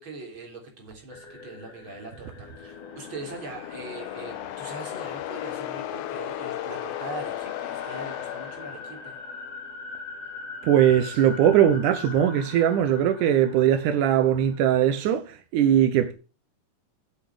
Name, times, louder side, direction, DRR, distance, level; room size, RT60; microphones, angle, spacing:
voice 1, 0.0-9.1, right 3 dB, 40° right, 4.3 m, -41 dB
sound 1, 1.1-15.1, left 4 dB, 60° left, 3.6 m, -42 dB
sound 2, 2.3-9.4, left 13 dB, 85° left, 2.3 m, -35 dB
voice 2, 10.6-16.1, right 10 dB, 85° right, 2.4 m, -20 dB
8.3 x 8.3 x 7.9 m
omnidirectional pair, 3.5 m